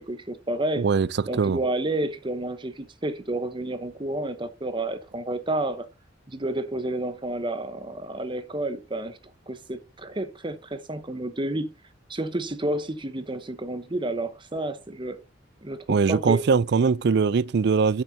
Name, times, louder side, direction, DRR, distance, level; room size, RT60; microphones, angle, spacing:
voice 1, 0.0-0.8 1.3-5.9 6.3-9.2 9.5-11.7 12.1-15.2 15.6-16.5, right 1 dB, 25° right, 0.9 m, -30 dB
voice 2, 0.8-1.1 1.4-1.6 15.9-18.0, right 5 dB, 60° right, 0.4 m, -21 dB
9.6 x 7.5 x 2.8 m
head